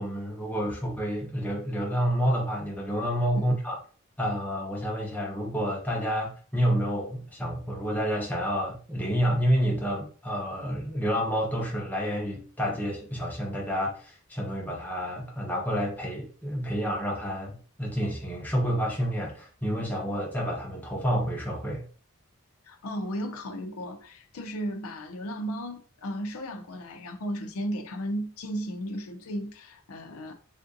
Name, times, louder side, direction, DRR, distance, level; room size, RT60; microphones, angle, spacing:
voice 1, 0.0-3.8 4.2-21.8, equal, 10° left, 0.8 m, -29 dB
voice 2, 22.7-30.3, equal, 75° left, 0.5 m, -35 dB
3.5 x 2.5 x 2.5 m
head